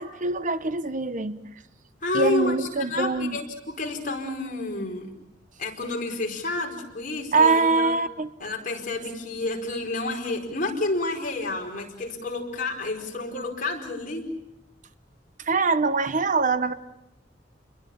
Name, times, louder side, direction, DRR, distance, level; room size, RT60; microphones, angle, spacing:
voice 1, 0.0-1.4 2.1-3.4 7.3-8.3 15.4-16.7, right 4 dB, 45° right, 13 dB, 0.9 m, -23 dB
voice 2, 2.0-5.1 5.6-7.9 8.4-14.3, left 2 dB, 45° left, 1 dB, 5.0 m, -30 dB
29.5 x 22.0 x 7.3 m, 0.85 s
head